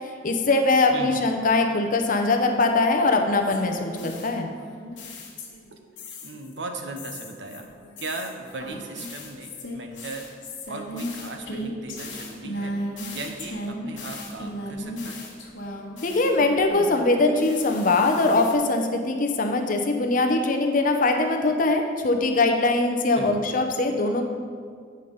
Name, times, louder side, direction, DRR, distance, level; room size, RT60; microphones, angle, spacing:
voice 1, 0.2-4.5 16.0-24.2, left 2 dB, 45° left, 4 dB, 0.7 m, -22 dB
sound 1, 3.4-5.7 6.0-6.5 7.0-17.1 17.4-18.5, equal, 75° left, 1.4 m, -36 dB
voice 2, 6.2-7.7 8.0-10.3 10.7-12.8 13.1-15.3 23.2-23.4, right 2 dB, 65° right, 5 dB, 0.8 m, -37 dB
7.9 x 5.2 x 5.4 m, 2.1 s
head